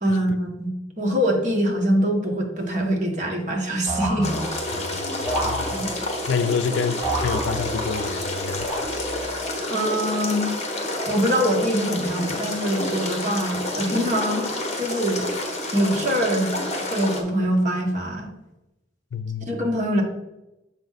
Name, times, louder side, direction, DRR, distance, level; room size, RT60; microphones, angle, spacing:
voice 1, 0.0-4.3 5.7-5.9 9.7-10.5 11.0-14.5 14.8-15.3 15.7-16.6 16.9-18.3 19.5-20.0, equal, 40° right, 1.3 m, -23 dB
sound 1, 3.9-4.8 5.3-6.2 7.0-8.0 8.6-9.3, right 1 dB, 10° right, 2.4 m, -30 dB
sound 2, 4.2-17.2, left 1 dB, 35° left, 1.2 m, -29 dB
voice 2, 4.7-5.7 6.3-8.7 19.1-19.5, left 6 dB, 70° left, 0.4 m, -28 dB
6.9 x 5.1 x 4.0 m
head